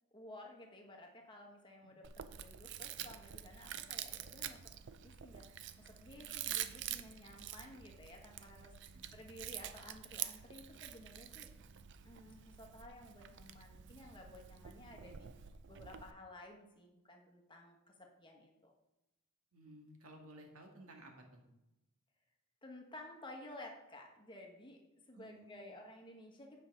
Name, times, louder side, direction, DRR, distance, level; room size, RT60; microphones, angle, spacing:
voice 1, 0.1-4.6 5.0-11.5 12.0-15.3 15.7-18.7 22.6-24.8 25.1-26.6, left 1 dB, 20° left, 1 dB, 1.3 m, -54 dB
Chewing mastication, 2.0-16.1, right 11 dB, 55° right, 0.5 m, -47 dB
voice 2, 19.5-21.4 25.1-25.8, right 1 dB, 75° right, 2 dB, 1.7 m, -56 dB
8.7 x 5.6 x 5.2 m, 0.93 s
head